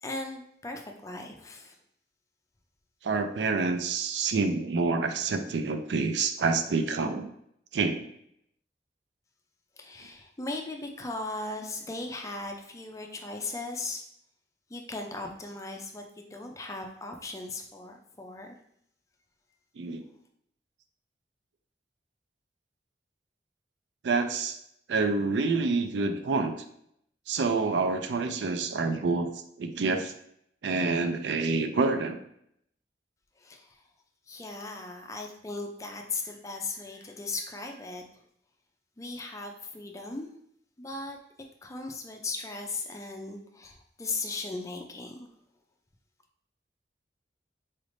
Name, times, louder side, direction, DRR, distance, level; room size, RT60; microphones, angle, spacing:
voice 1, 0.0-1.8 9.8-14.0 14.7-18.6 33.4-33.8 34.3-38.0 39.0-40.3 40.8-41.2 41.6-45.3, left 3 dB, 20° left, 3 dB, 0.4 m, -37 dB
voice 2, 3.0-7.3 7.7-8.1 19.8-20.1 24.0-24.6 24.9-26.5 27.3-29.3 29.6-30.1 30.6-32.2, right 4 dB, 80° right, 8 dB, 0.4 m, -27 dB
4.1 x 3.3 x 2.5 m, 0.71 s
head